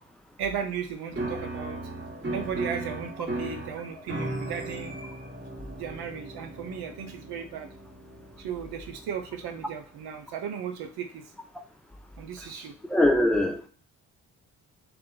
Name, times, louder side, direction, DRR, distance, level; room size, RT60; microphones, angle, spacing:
voice 1, 0.4-1.8 2.3-4.9 5.8-7.7 8.4-11.3 12.2-12.7, right 7 dB, 60° right, 5 dB, 0.7 m, -35 dB
Piano, 1.1-9.6, right 1 dB, 25° right, 0.9 m, -37 dB
voice 2, 12.9-13.7, left 1 dB, ahead, 4 dB, 0.4 m, -22 dB
2.6 x 2.1 x 2.3 m, 0.40 s
hypercardioid pair, 45°, 44 cm